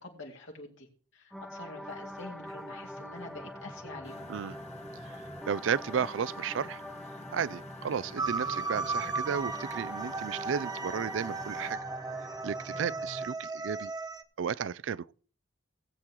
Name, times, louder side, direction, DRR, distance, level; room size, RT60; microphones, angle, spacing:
voice 1, 0.0-0.9 1.1-4.3 12.7-12.9, left 2 dB, 70° left, 2.4 m, -46 dB
sound 1, 1.3-13.3, equal, ahead, 0.4 m, -44 dB
Engine, 4.0-11.7, left 3 dB, 35° left, 1.0 m, -50 dB
voice 2, 5.0-6.8 7.3-11.8 12.4-13.9 14.4-15.1, right 7 dB, 75° right, 0.4 m, -33 dB
sound 2, 8.2-14.2, right 4 dB, 20° right, 0.8 m, -36 dB
18.0 x 8.2 x 3.0 m
head